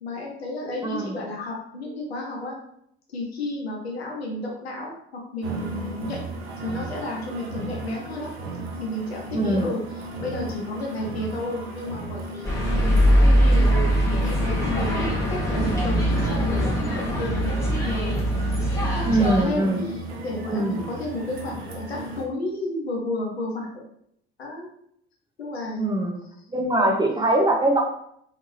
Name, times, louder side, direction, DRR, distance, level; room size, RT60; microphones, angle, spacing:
voice 1, 0.0-2.6 3.1-6.2 6.6-8.3 8.8-13.8 14.1-18.2 18.8-23.7 24.4-24.7 25.4-26.0 26.8-27.0, left 2 dB, 85° left, -1 dB, 0.6 m, -32 dB
voice 2, 0.8-1.1 9.3-9.7 19.1-19.9 20.5-20.8 25.8-26.1 26.5-27.8, right 1 dB, 15° right, 0 dB, 0.8 m, -22 dB
sound 1, 5.4-22.3, right 3 dB, 80° right, 0.6 m, -35 dB
sound 2, 12.4-19.4, equal, 10° left, 1.2 m, -21 dB
3.4 x 2.8 x 3.2 m, 0.73 s
figure-of-eight pair, 50°, 31 cm